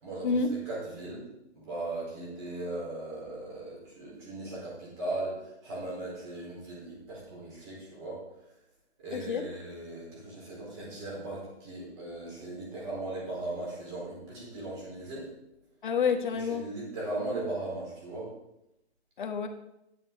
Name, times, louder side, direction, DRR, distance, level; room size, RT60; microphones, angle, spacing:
voice 1, 0.0-1.3 1.6-8.2 9.0-15.3 16.3-18.3, right 2 dB, 25° right, -5 dB, 4.2 m, -38 dB
voice 2, 9.1-9.4 15.8-16.6 19.2-19.5, left 5 dB, 45° left, 6 dB, 1.2 m, -28 dB
10.0 x 7.1 x 5.2 m, 0.86 s
hypercardioid pair, 165°, 34 cm